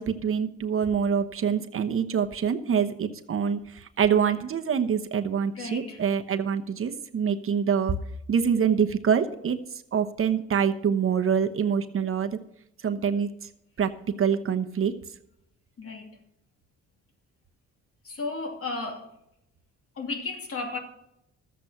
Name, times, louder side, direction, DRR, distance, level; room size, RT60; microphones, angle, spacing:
voice 1, 0.0-8.0 8.3-9.6 9.9-12.4 12.8-13.3 13.8-13.9 14.2-14.9, right 7 dB, 45° right, 1.0 m, -25 dB
voice 2, 5.5-6.0 15.8-16.2 18.0-19.1 20.0-20.8, left 3 dB, 50° left, 2.8 m, -34 dB
13.0 x 8.1 x 5.7 m
cardioid pair, 90°, 30 cm